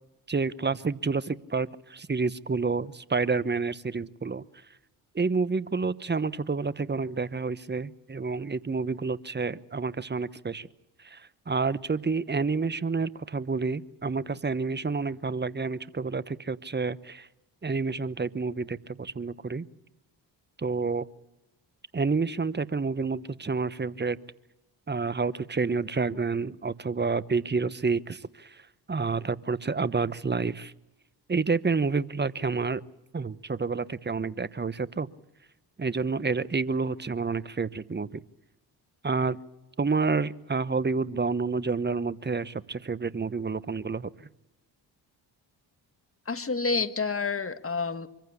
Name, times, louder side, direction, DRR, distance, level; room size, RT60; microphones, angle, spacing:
voice 1, 0.3-4.4 5.1-10.7 11.0-17.3 17.6-19.6 20.6-21.1 21.9-24.2 24.9-28.6 28.9-30.7 31.3-32.8 33.1-35.1 35.8-38.2 39.0-39.4 39.8-44.1, right 4 dB, 20° right, 17 dB, 1.0 m, -29 dB
voice 2, 46.3-48.1, left 4 dB, 25° left, 10 dB, 1.6 m, -29 dB
25.0 x 15.0 x 8.5 m, 0.99 s
hypercardioid pair, 45°, 49 cm